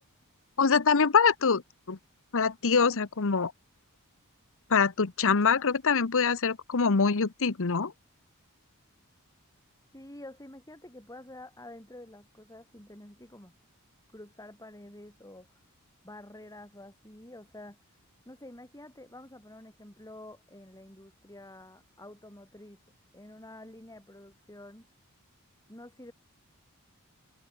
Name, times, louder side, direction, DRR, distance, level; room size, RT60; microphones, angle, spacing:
voice 1, 0.6-1.6 1.9-2.0 2.3-3.5 4.7-7.9, left 5 dB, 65° left, 0.9 m, -24 dB
voice 2, 9.9-13.5 14.1-15.6 16.0-22.8 23.1-24.9 25.7-26.1, left 1 dB, 15° left, 7.2 m, -48 dB
head